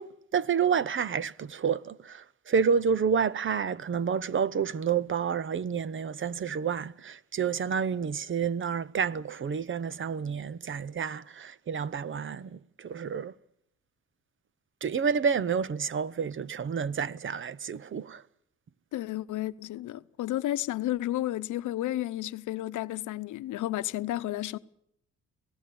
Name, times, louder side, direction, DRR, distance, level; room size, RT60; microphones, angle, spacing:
voice 1, 0.0-13.3 14.8-18.2, right 6 dB, 40° right, 0.8 m, -29 dB
voice 2, 18.9-24.6, left 14 dB, 80° left, 0.9 m, -32 dB
26.5 x 18.0 x 7.0 m
cardioid pair, 90°, 30 cm